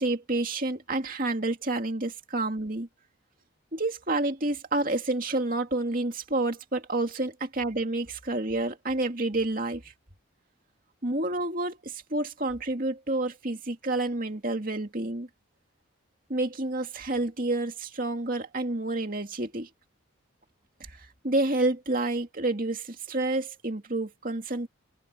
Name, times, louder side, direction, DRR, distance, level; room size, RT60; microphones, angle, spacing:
voice 1, 0.0-2.9 3.7-9.9 11.0-15.3 16.3-19.7 20.9-24.7, right 2 dB, 40° right, 2.5 m, -29 dB
open air
head